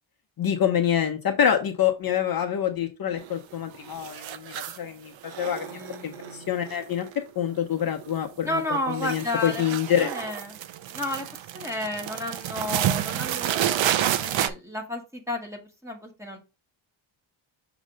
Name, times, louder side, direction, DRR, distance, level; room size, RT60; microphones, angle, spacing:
voice 1, 0.4-7.1 7.4-10.1, left 9 dB, 45° left, 4 dB, 0.8 m, -26 dB
sound 1, 3.2-3.6 3.8-4.9 5.2-7.4 7.7-8.2 8.4-14.5, right 11 dB, 70° right, 0.7 m, -30 dB
voice 2, 5.6-6.5 8.4-9.6 10.0-10.6 10.9-11.3 11.5-16.4, left 1 dB, 5° right, 0 dB, 1.7 m, -32 dB
6.4 x 3.1 x 5.0 m, 0.28 s
cardioid pair, 135°, 48 cm